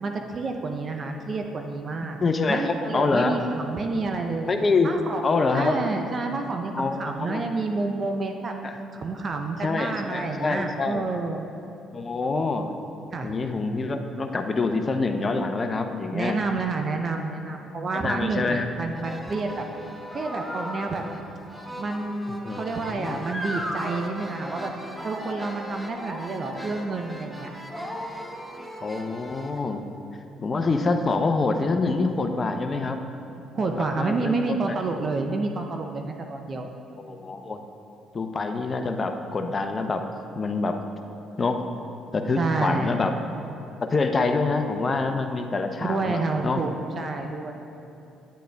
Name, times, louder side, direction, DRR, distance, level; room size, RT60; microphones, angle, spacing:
voice 1, 0.0-2.2 2.5-4.5 4.8-5.2 5.5-8.5 8.9-11.5 13.1-13.3 16.1-19.6 20.1-21.0 21.8-24.7 25.0-27.5 33.5-36.7 42.4-43.0 45.8-47.5, right 3 dB, 45° right, 4 dB, 0.5 m, -29 dB
voice 2, 2.2-3.4 4.5-4.9 5.2-5.8 6.7-7.4 8.6-8.8 9.6-11.0 11.9-12.7 13.2-16.4 17.9-18.7 22.3-22.6 22.9-23.2 28.8-29.8 30.4-33.0 33.7-34.4 37.0-37.6 38.1-40.0 40.3-40.8 41.4-41.6 42.1-43.1 43.8-46.6, left 3 dB, 35° left, 6 dB, 0.6 m, -26 dB
sound 1, 19.0-29.6, equal, 5° right, 0.9 m, -37 dB
9.1 x 8.3 x 2.3 m, 2.8 s
hypercardioid pair, 55°, 0 cm